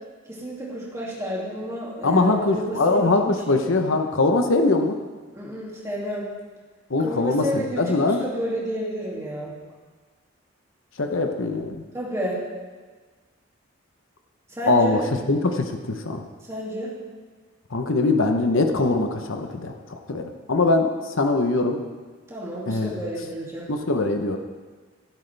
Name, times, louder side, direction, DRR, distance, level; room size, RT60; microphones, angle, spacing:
voice 1, 0.3-3.3 5.4-6.3 7.0-9.5 11.9-12.4 14.5-15.0 16.4-16.9 22.3-23.7, equal, 15° right, -5 dB, 2.5 m, -31 dB
voice 2, 2.0-5.0 6.9-8.2 11.0-11.8 14.7-15.0 15.3-16.2 17.7-21.8 22.7-22.9 23.7-24.4, left 2 dB, 70° left, 5 dB, 0.9 m, -22 dB
13.0 x 12.5 x 3.4 m, 1.4 s
head